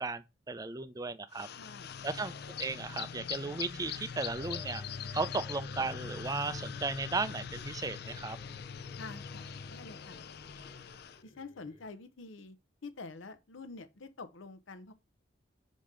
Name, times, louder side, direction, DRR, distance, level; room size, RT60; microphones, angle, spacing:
voice 1, 0.0-1.5 2.0-4.8 5.1-8.4, right 3 dB, 20° right, 0.4 m, -36 dB
sound 1, 1.3-11.2, left 7 dB, 55° left, 0.4 m, -42 dB
voice 2, 1.6-1.9 9.0-10.2 11.2-12.6 12.8-14.9, left 3 dB, 80° left, 0.8 m, -47 dB
sound 2, 4.3-12.0, left 1 dB, 35° left, 1.7 m, -55 dB
5.5 x 5.1 x 3.7 m
head